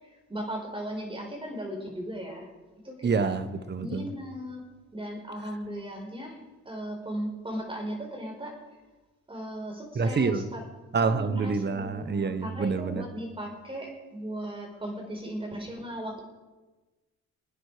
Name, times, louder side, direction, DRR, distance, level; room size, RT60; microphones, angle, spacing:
voice 1, 0.0-2.5 2.8-3.3 3.8-4.6 4.9-8.6 9.3-10.7 11.0-16.2, equal, 15° right, 5.0 m, -37 dB
voice 2, 3.0-4.1 9.9-10.5 10.9-13.0, right 4 dB, 35° right, 1.2 m, -27 dB
25.5 x 9.8 x 5.0 m
cardioid pair, 90°, 30 cm